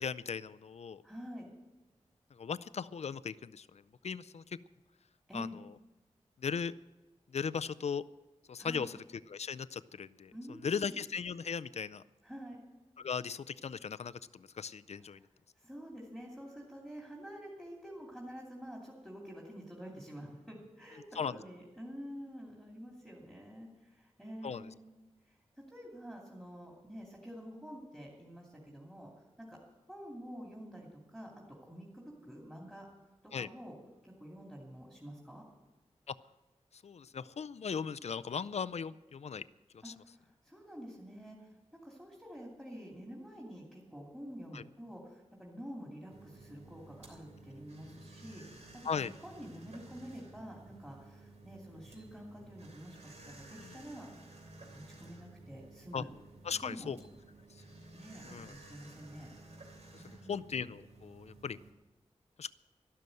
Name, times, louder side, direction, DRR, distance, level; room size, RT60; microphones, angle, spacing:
voice 1, 0.0-1.0 2.3-4.6 5.3-5.5 6.4-6.7 7.3-8.0 8.5-9.0 9.3-10.3 10.6-12.0 13.0-15.2 21.2-21.4 24.4-24.7 33.3-33.5 36.1-36.2 36.8-39.4 39.8-39.9 44.5-44.6 48.8-49.1 53.6-53.8 55.9-56.0 56.4-57.0 58.3-58.5 59.9-61.6 62.4-62.5, left 6 dB, 65° left, 14 dB, 0.5 m, -38 dB
voice 2, 1.0-1.5 5.3-5.6 8.6-8.9 10.3-11.0 12.2-12.7 14.9-15.2 15.6-29.6 29.9-32.9 33.2-33.7 34.0-35.5 39.8-54.1 54.7-56.1 56.5-56.9 57.9-59.3 60.0-60.5, equal, 10° right, -2 dB, 2.7 m, -48 dB
sound 1, 46.1-61.7, right 2 dB, 70° right, 3.1 m, -54 dB
12.5 x 12.0 x 7.8 m, 1.1 s
wide cardioid pair, 100°, 12 cm